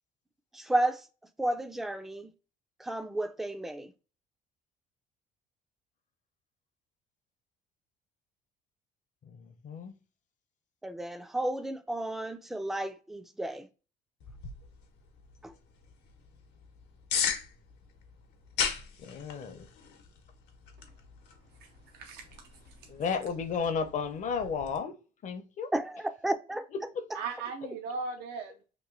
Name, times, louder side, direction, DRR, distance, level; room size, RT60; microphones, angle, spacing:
voice 1, 0.5-1.1 1.4-2.3 2.8-3.9 10.8-13.7 15.4-15.5 25.7-26.7, right 1 dB, ahead, 0.3 m, -32 dB
voice 2, 9.2-9.9 19.0-19.7 22.9-25.0 25.2-25.7 26.7-27.1, left 5 dB, 45° left, 0.6 m, -33 dB
sound 1, 14.2-24.8, left 7 dB, 90° left, 0.8 m, -39 dB
voice 3, 21.9-22.3 22.7-22.8 27.1-28.6, right 4 dB, 75° right, 0.5 m, -37 dB
3.0 x 2.5 x 3.6 m
cardioid pair, 110°, 17 cm